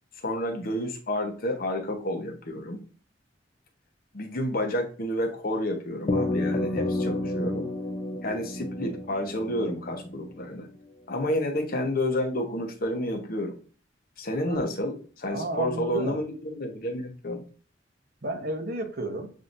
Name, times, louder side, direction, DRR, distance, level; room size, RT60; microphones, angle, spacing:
voice 1, 0.2-2.8 4.1-7.7 8.2-10.7 11.1-13.6 14.2-17.4, left 1 dB, 55° left, 3 dB, 1.0 m, -30 dB
sound 1, 6.1-10.7, left 1 dB, 30° left, 0.6 m, -30 dB
voice 2, 15.3-16.2 18.2-19.3, right 2 dB, 55° right, 4 dB, 0.9 m, -32 dB
7.4 x 2.7 x 2.6 m, 0.41 s
head